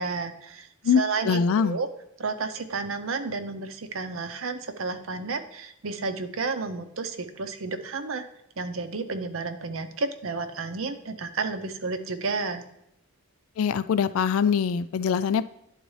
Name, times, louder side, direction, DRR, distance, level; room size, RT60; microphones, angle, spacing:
voice 1, 0.0-0.7 1.0-1.9 2.2-8.2 8.6-12.6, right 4 dB, 65° right, 9 dB, 0.7 m, -31 dB
voice 2, 0.8-1.8 13.6-15.5, left 6 dB, 70° left, 14 dB, 0.3 m, -23 dB
11.0 x 4.0 x 3.2 m, 0.82 s
head